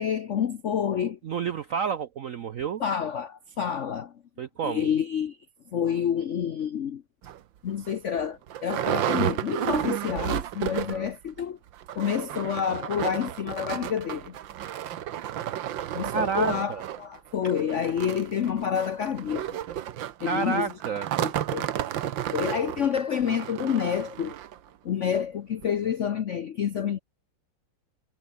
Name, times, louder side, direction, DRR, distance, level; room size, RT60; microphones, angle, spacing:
voice 1, 0.0-1.2 2.8-4.1 4.6-5.4 5.7-7.0 7.6-11.6 11.9-14.4 15.9-19.5 20.2-20.7 21.2-21.7 22.3-24.3 24.8-27.0, left 8 dB, 85° left, 0.6 m, -28 dB
voice 2, 1.2-2.8 4.4-4.9 10.7-11.1 16.1-16.8 20.2-21.1, right 7 dB, 85° right, 0.7 m, -30 dB
sound 1, 7.2-7.4 7.9-8.0 8.2-11.1 11.4-11.5 11.8-24.6 25.2-25.3 25.6-25.7, right 11 dB, 65° right, 1.7 m, -32 dB
omnidirectional pair, 2.4 m